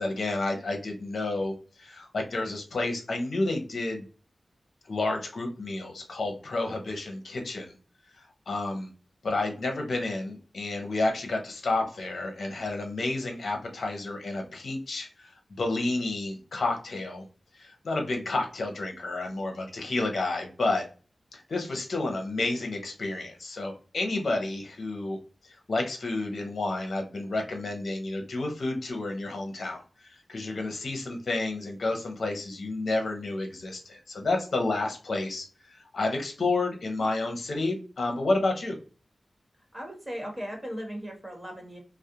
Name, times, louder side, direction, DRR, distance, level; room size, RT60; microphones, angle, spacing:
voice 1, 0.0-4.0 4.9-7.7 8.1-8.9 9.2-17.2 17.5-20.8 21.3-25.2 25.5-38.8, left 2 dB, 75° left, 3 dB, 0.7 m, -30 dB
voice 2, 39.7-41.8, equal, 10° right, 1 dB, 1.2 m, -37 dB
2.4 x 2.0 x 2.7 m, 0.35 s
cardioid pair, 60°, 0 cm